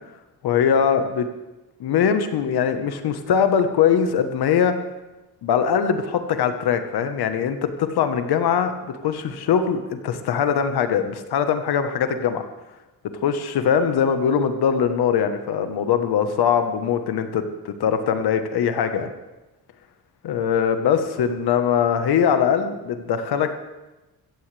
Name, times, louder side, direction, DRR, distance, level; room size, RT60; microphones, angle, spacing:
voice 1, 0.4-1.3 1.8-4.7 5.4-12.4 13.2-19.1 20.2-23.5, left 7 dB, 75° left, 8 dB, 1.3 m, -21 dB
15.0 x 15.0 x 3.4 m, 1.1 s
cardioid pair, 115°, 39 cm